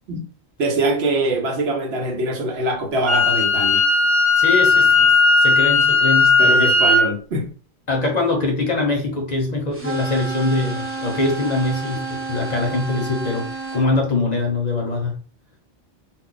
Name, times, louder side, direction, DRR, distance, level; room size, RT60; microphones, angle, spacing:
voice 1, 0.6-3.8 6.4-7.5, right 2 dB, 75° right, 1.0 m, -23 dB
Wind instrument woodwind instrument, 3.1-7.1, left 3 dB, 45° right, 0.8 m, -16 dB
voice 2, 4.4-5.1 5.4-6.6 7.9-15.1, left 2 dB, 45° left, 0.7 m, -23 dB
sound 1, 9.7-13.9, right 4 dB, 20° right, 0.4 m, -30 dB
2.3 x 2.2 x 3.8 m
omnidirectional pair, 1.1 m